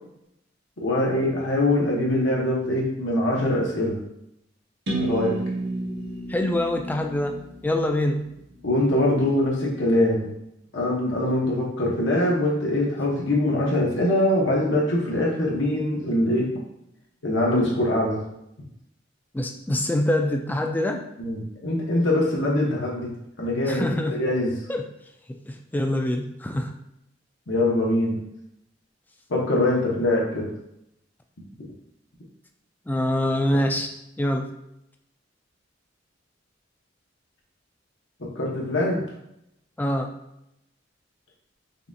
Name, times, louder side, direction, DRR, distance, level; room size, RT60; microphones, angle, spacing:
voice 1, 0.8-4.0 5.0-5.4 8.6-10.3 10.7-16.5 17.2-18.2 21.2-23.1 23.4-24.6 27.5-28.2 29.3-30.5 38.2-39.0, left 1 dB, 85° left, -3 dB, 1.1 m, -23 dB
sound 1, 4.9-8.7, right 1 dB, 65° right, 1.0 m, -32 dB
voice 2, 6.3-8.3 19.3-21.1 23.7-24.2 24.7-24.9 25.5-26.7 32.9-33.9 34.2-34.5 39.8-40.1, left 1 dB, 10° left, 4 dB, 0.3 m, -25 dB
5.5 x 2.4 x 2.7 m, 0.82 s
head